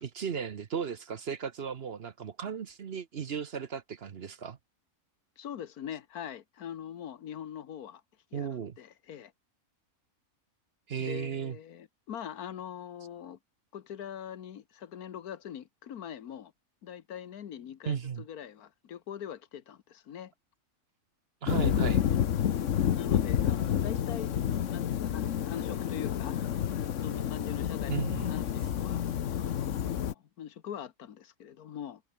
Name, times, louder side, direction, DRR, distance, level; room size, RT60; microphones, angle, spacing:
voice 1, 0.0-4.6 8.3-8.8 10.9-11.6 17.8-18.2 21.4-22.0 27.9-28.3, right 7 dB, 50° right, 1.0 m, -35 dB
voice 2, 5.4-8.0 8.3-9.3 11.0-13.4 13.7-16.5 16.8-20.3 22.0-22.3 22.9-24.3 24.7-26.4 27.0-32.0, left 9 dB, 90° left, 1.6 m, -43 dB
sound 1, 21.5-30.1, left 9 dB, 60° left, 1.2 m, -29 dB
omnidirectional pair, 1.5 m